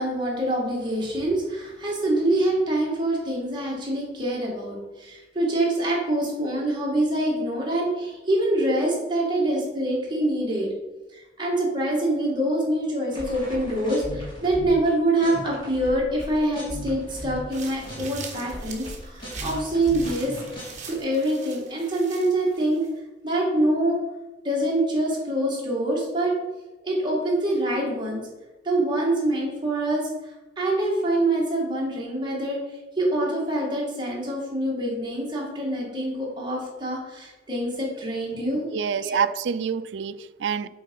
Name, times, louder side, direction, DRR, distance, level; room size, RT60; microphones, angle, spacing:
voice 1, 0.0-10.7 11.1-20.4 20.8-22.9 23.2-24.0 24.4-26.3 26.8-28.2 28.6-30.1 30.6-32.6 33.0-38.7 39.0-39.2, right 1 dB, 25° right, -3 dB, 2.1 m, -25 dB
sound 1, 13.1-14.9 15.2-21.0, equal, 30° left, 2.7 m, -38 dB
sound 2, 17.5-22.9, right 5 dB, 45° right, 1.3 m, -43 dB
voice 2, 38.7-40.7, right 7 dB, 85° right, 16 dB, 0.4 m, -27 dB
7.6 x 4.3 x 5.4 m, 1.1 s
head